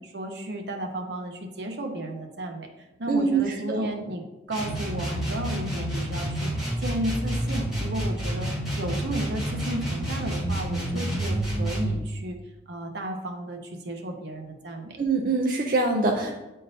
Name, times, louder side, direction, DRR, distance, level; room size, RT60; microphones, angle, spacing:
voice 1, 0.0-2.7 3.0-4.2 4.5-6.5 6.8-8.5 8.8-12.4 12.7-15.0, right 1 dB, 75° right, 3 dB, 0.8 m, -33 dB
voice 2, 3.1-3.9 15.0-16.3, right 3 dB, 50° right, 1 dB, 0.5 m, -24 dB
sound 1, 4.5-12.0, right 1 dB, 5° right, 2.0 m, -29 dB
9.3 x 3.7 x 2.7 m, 1.0 s
head